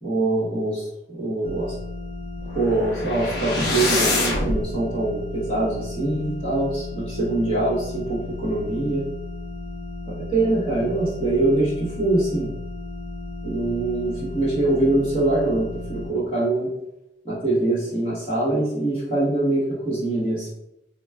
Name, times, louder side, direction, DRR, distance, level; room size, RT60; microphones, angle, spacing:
voice 1, 0.0-1.7 2.5-9.0 10.1-12.5 13.4-16.7 17.2-20.5, right 2 dB, 30° left, -10 dB, 1.2 m, -23 dB
sound 1, 1.4-16.1, left 2 dB, 35° right, 0.7 m, -35 dB
sound 2, 2.4-4.6, left 2 dB, 70° left, 0.8 m, -25 dB
4.2 x 2.3 x 2.2 m, 0.85 s
head